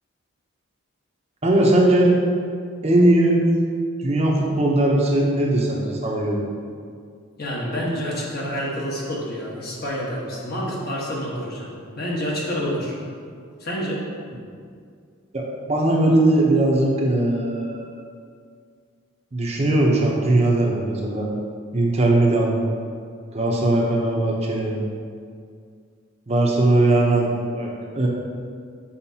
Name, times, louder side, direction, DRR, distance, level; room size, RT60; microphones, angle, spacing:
voice 1, 1.4-2.2 2.8-3.5 4.0-6.5 15.3-17.9 19.3-21.3 21.7-22.6 23.3-24.8 26.3-27.3 27.5-28.1, right 1 dB, 30° right, -2 dB, 0.7 m, -19 dB
voice 2, 7.4-12.9 13.6-14.0, equal, 50° left, -5 dB, 1.3 m, -28 dB
7.1 x 5.0 x 2.8 m, 2.2 s
head